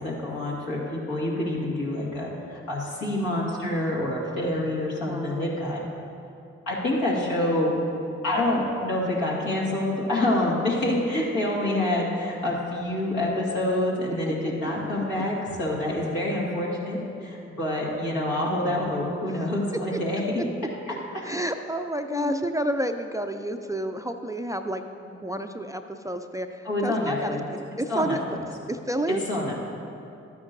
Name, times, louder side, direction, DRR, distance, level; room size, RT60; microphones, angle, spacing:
voice 1, 0.0-5.8 6.7-7.7 8.2-20.3 20.9-21.0 22.1-22.4 26.7-27.4 27.9-28.4 29.3-29.5, left 1 dB, 75° left, -5 dB, 2.0 m, -27 dB
voice 2, 5.1-5.5 19.3-19.4 19.9-20.0 21.2-24.9 25.2-27.4 27.8-28.2 28.7-29.2, right 1 dB, 10° right, 7 dB, 0.4 m, -30 dB
12.0 x 9.4 x 2.7 m, 2.6 s
hypercardioid pair, 40°, 33 cm